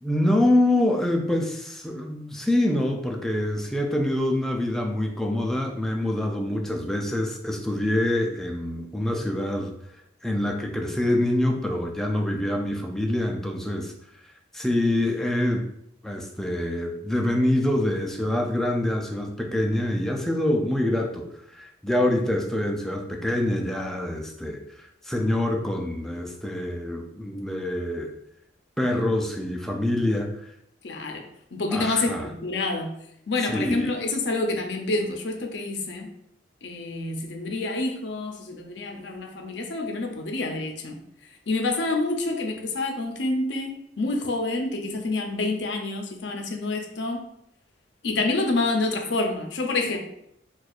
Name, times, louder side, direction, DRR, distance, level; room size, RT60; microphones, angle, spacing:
voice 1, 0.0-9.7 10.2-13.9 14.5-15.7 16.0-28.1 28.8-30.4 31.7-32.3 33.5-34.0, left 1 dB, ahead, 1 dB, 0.3 m, -25 dB
voice 2, 30.8-31.2 31.5-32.9 33.3-36.1 36.6-41.0 41.5-47.3 48.0-50.0, left 2 dB, 65° left, 3 dB, 0.5 m, -27 dB
4.2 x 2.3 x 2.4 m, 0.74 s
head